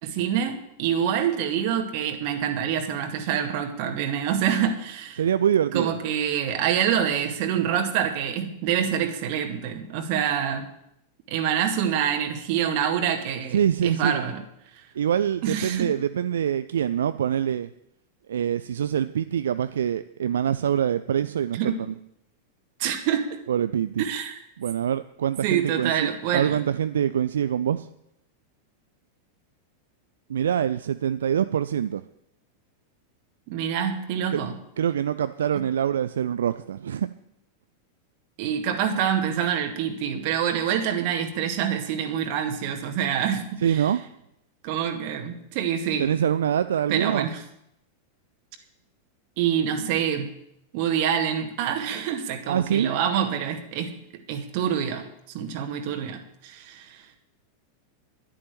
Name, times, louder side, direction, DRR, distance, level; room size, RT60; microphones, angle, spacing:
voice 1, 0.0-5.2 5.7-10.6 11.3-14.4 14.7-14.8 15.4-16.0 21.5-21.8 22.8-23.4 24.0-24.4 25.4-26.6 33.5-34.6 35.5-35.7 38.4-43.9 44.6-46.1 46.9-47.4 49.4-50.3 50.7-54.0 54.3-55.1 55.3-57.1, right 9 dB, 45° right, 5 dB, 2.1 m, -26 dB
voice 2, 5.2-6.0 13.5-14.2 15.0-17.7 18.3-22.0 23.5-24.0 24.6-27.9 30.3-32.0 34.3-34.4 34.8-37.1 43.6-44.0 46.0-47.3 52.5-52.9, right 9 dB, 65° right, 12 dB, 0.5 m, -25 dB
11.5 x 11.0 x 9.2 m, 0.79 s
figure-of-eight pair, 90°, 0 cm